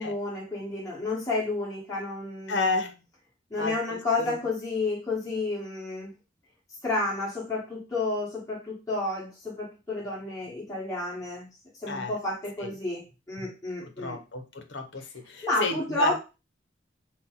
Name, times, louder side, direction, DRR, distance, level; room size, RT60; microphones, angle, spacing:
voice 1, 0.0-2.6 3.5-6.1 6.8-11.5 11.8-14.2 15.4-16.2, left 2 dB, 20° left, -7 dB, 1.6 m, -31 dB
voice 2, 2.5-3.0 3.6-4.0 4.3-4.4 11.9-12.2 12.6-12.7 13.8-16.2, left 3 dB, 70° left, 6 dB, 0.7 m, -31 dB
4.2 x 2.1 x 3.9 m, 0.29 s
head